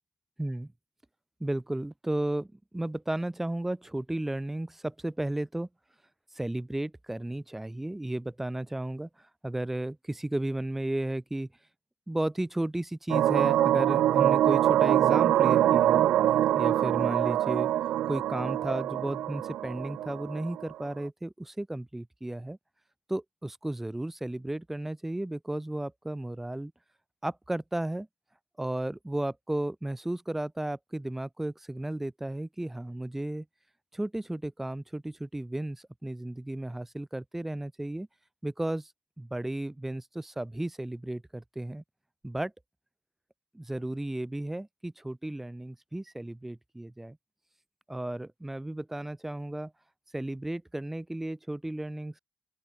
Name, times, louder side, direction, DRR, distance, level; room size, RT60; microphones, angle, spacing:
voice 1, 1.4-5.7 6.3-9.1 9.4-11.5 12.1-16.1 16.5-17.7 18.1-22.6 23.1-26.7 27.2-28.1 28.6-33.4 33.9-38.1 38.4-38.9 39.2-41.8 42.2-42.5 43.5-47.2 47.9-49.7 50.1-52.2, right 1 dB, 15° right, 1.0 m, -34 dB
sound 1, 13.1-20.7, right 12 dB, 75° right, 0.5 m, -24 dB
open air
supercardioid pair, 45°, 2 cm